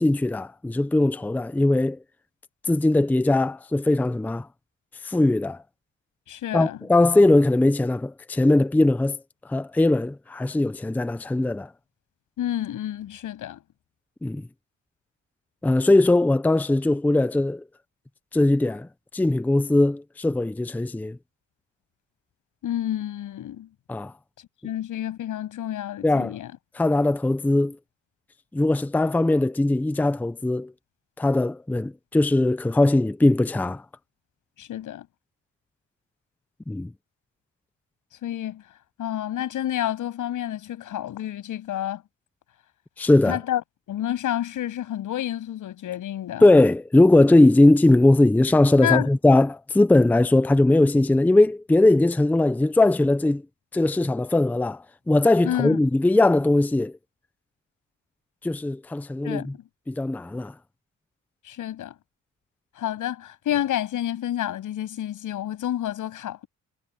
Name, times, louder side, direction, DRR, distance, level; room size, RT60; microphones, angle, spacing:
voice 1, 0.0-2.0 2.7-4.5 5.0-5.6 6.5-9.2 9.5-11.7 14.2-14.4 15.6-17.6 18.3-18.9 19.1-21.2 23.9-24.1 26.0-26.4 26.8-27.8 28.5-30.7 31.2-33.8 36.7-36.9 43.0-43.4 46.4-53.4 53.7-57.0 58.4-59.5 59.9-60.5, left 2 dB, 5° left, 0.5 m, -20 dB
voice 2, 6.3-6.8 12.4-13.6 22.6-23.7 24.6-26.5 34.6-35.1 38.2-38.6 39.0-42.0 43.3-43.6 43.9-46.5 48.8-49.1 55.4-55.8 59.2-59.6 61.4-61.9 62.8-66.5, left 12 dB, 85° left, 7.9 m, -29 dB
cardioid pair, 155°, 30 cm